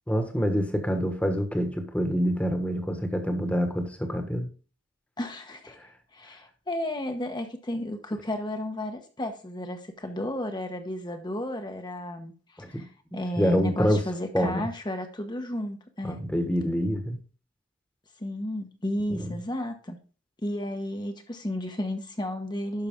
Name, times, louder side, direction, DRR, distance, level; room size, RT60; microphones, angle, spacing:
voice 1, 0.1-4.5 5.7-5.9 12.6-14.0 14.3-14.7 16.0-17.2 19.1-19.3, equal, 5° left, 6 dB, 1.4 m, -27 dB
voice 2, 5.2-5.8 6.1-12.9 13.1-16.2 18.2-20.0 20.4-22.9, left 1 dB, 25° left, 5 dB, 1.1 m, -33 dB
11.5 x 5.8 x 3.7 m, 0.36 s
head